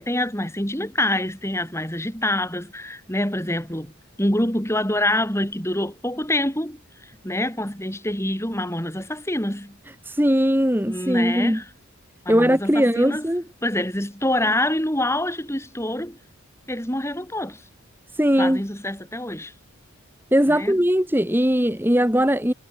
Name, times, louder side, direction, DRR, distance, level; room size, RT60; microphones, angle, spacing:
voice 1, 0.0-9.8 10.9-11.7 12.2-13.3 13.6-16.2 16.7-17.6 18.4-19.5 20.5-20.8, left 1 dB, 10° left, 4.7 m, -26 dB
voice 2, 10.0-11.6 12.3-13.4 18.1-18.6 20.3-22.5, equal, 10° right, 2.0 m, -20 dB
head